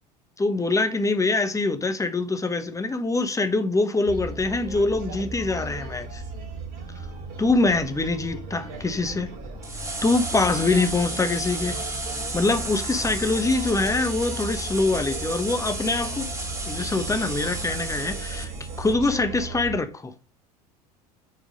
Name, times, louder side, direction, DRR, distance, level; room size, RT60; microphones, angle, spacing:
voice 1, 0.4-6.2 7.4-9.3 10.0-11.8 12.3-16.3 16.6-18.5 18.8-20.1, left 3 dB, 15° left, 1.3 m, -24 dB
sound 1, 4.1-19.8, right 2 dB, 55° right, 3.7 m, -36 dB
sound 2, 9.6-18.9, right 2 dB, 15° right, 2.0 m, -33 dB
6.8 x 4.6 x 5.2 m
hypercardioid pair, 70°, 20 cm